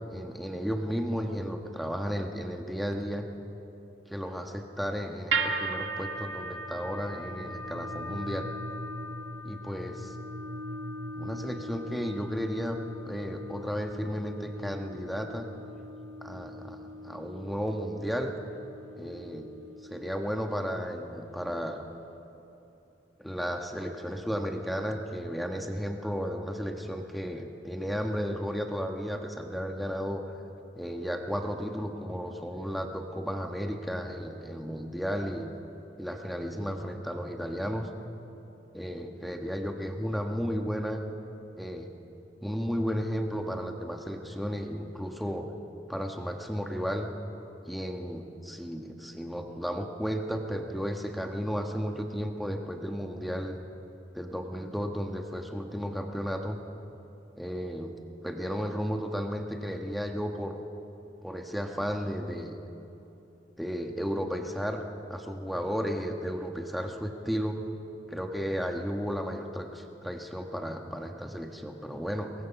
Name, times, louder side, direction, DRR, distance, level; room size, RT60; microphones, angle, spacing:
voice 1, 0.1-3.3 4.1-8.5 9.4-10.1 11.1-12.8 13.0-15.5 16.2-18.3 19.0-19.5 19.8-21.9 23.2-30.2 30.7-35.5 36.0-37.9 38.7-41.0 41.6-41.9 42.4-45.5 45.9-47.1 47.6-53.6 54.1-56.6 57.4-57.9 58.2-60.5 61.2-62.6 63.6-67.6 68.1-72.3, equal, ahead, 3 dB, 1.2 m, -33 dB
sound 1, 5.3-21.5, right 2 dB, 85° right, 1.7 m, -38 dB
23.5 x 19.5 x 5.9 m, 2.9 s
head